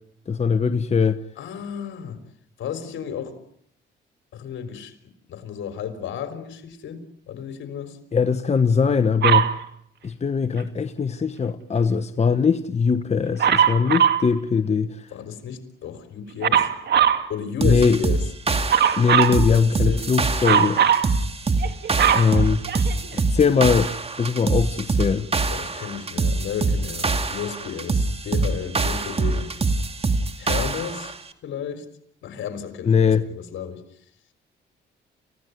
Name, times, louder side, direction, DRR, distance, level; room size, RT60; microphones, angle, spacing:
voice 1, 0.3-1.2 8.1-9.5 10.0-15.1 17.6-18.0 19.0-20.8 22.1-22.6 23.1-23.9 24.2-25.3 32.9-33.2, left 5 dB, 35° left, 1.2 m, -21 dB
voice 2, 1.4-2.2 2.6-3.4 4.3-8.0 15.1-16.7 17.3-18.2 19.4-20.1 25.5-29.5 30.4-31.1 31.4-31.9 32.2-33.8, left 8 dB, 75° left, 4.1 m, -33 dB
Dog, 9.2-9.6 13.4-14.3 16.4-17.2 18.7-19.4 20.4-21.1 21.6-23.1 23.9-24.0, right 8 dB, 60° right, 2.5 m, -19 dB
sound 1, 17.6-31.2, right 3 dB, 30° right, 2.4 m, -24 dB
29.5 x 17.0 x 9.5 m
cardioid pair, 90°, 20 cm